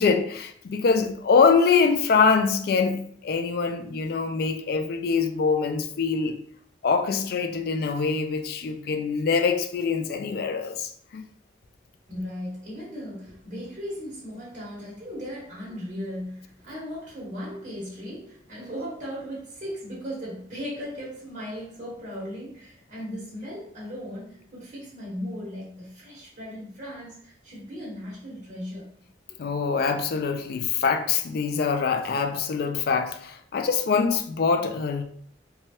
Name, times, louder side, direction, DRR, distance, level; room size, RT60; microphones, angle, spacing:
voice 1, 0.0-6.3 6.8-11.2 29.4-35.0, left 5 dB, 55° left, 0.3 m, -24 dB
voice 2, 12.1-28.9 29.3-29.4, equal, 40° right, 1.1 m, -37 dB
3.1 x 2.3 x 2.8 m
head